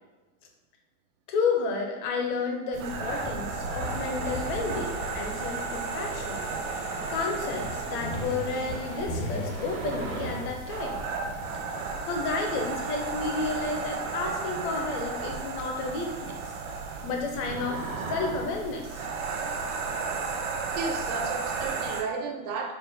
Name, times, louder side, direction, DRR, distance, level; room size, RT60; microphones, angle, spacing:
voice 1, 1.3-6.5 6.8-11.1 12.0-16.4 17.0-19.0, left 4 dB, 35° left, 2 dB, 0.6 m, -31 dB
sound 1, 2.7-22.0, right 4 dB, 75° right, 0.7 m, -34 dB
sound 2, 2.9-13.3 13.6-16.0, left 1 dB, 50° left, 1.0 m, -40 dB
sound 3, 3.8-10.4, left 1 dB, 85° left, 1.5 m, -43 dB
voice 2, 20.7-22.7, right 4 dB, 30° right, 3 dB, 0.4 m, -33 dB
5.0 x 2.1 x 3.4 m, 1.2 s
supercardioid pair, 160°, 41 cm